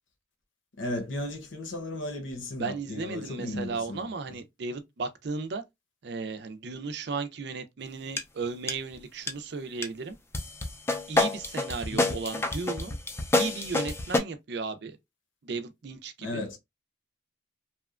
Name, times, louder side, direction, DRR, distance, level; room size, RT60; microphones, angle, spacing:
voice 1, 0.8-4.1 11.9-12.2 16.2-16.6, left 1 dB, 85° left, 0.8 m, -35 dB
voice 2, 2.6-5.6 6.0-10.2 11.1-12.9 13.3-15.0 15.4-16.6, right 4 dB, 60° right, 0.4 m, -35 dB
sound 1, 8.2-8.3 8.7-8.9 9.3-9.4 9.8-9.9 10.3-14.2, left 2 dB, 15° left, 0.3 m, -28 dB
2.8 x 2.2 x 2.3 m
head